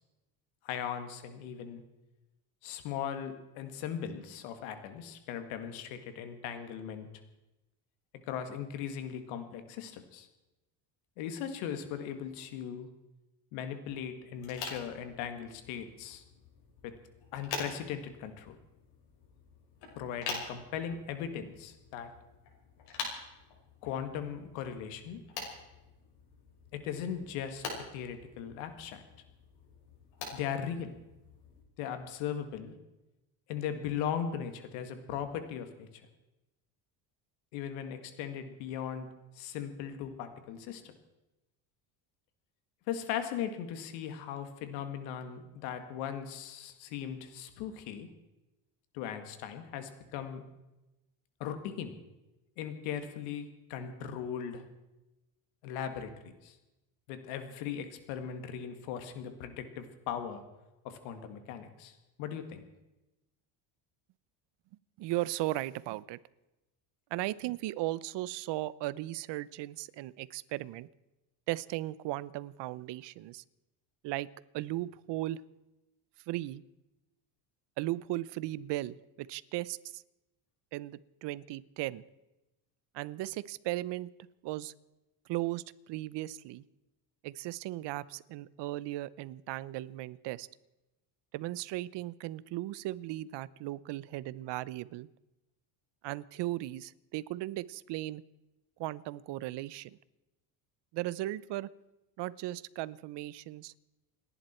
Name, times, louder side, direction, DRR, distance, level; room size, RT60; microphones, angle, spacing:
voice 1, 0.6-1.8 2.6-7.1 8.3-10.3 11.2-12.9 13.5-16.2 16.8-17.0 17.3-18.6 20.0-22.1 23.8-25.2 26.7-29.0 30.3-30.9 31.8-32.8 33.5-35.9 37.5-39.1 39.4-40.9 42.9-48.1 48.9-50.4 51.4-52.0 52.6-54.6 55.6-56.6 57.1-60.4 60.8-61.9 62.2-62.6, left 8 dB, 90° left, 8 dB, 2.1 m, -38 dB
sound 1, 14.3-31.6, left 4 dB, 65° left, 5.9 m, -46 dB
voice 2, 65.0-66.2 67.1-70.9 71.5-73.4 74.0-74.3 74.5-75.4 76.3-76.6 77.8-80.0 80.7-82.0 82.9-84.1 84.4-84.7 85.3-86.6 87.2-90.5 91.3-95.1 96.0-98.2 98.8-99.9 100.9-101.7 102.2-103.7, right 16 dB, 60° right, 18 dB, 0.9 m, -36 dB
29.0 x 11.0 x 4.5 m, 0.98 s
cardioid pair, 120°, 46 cm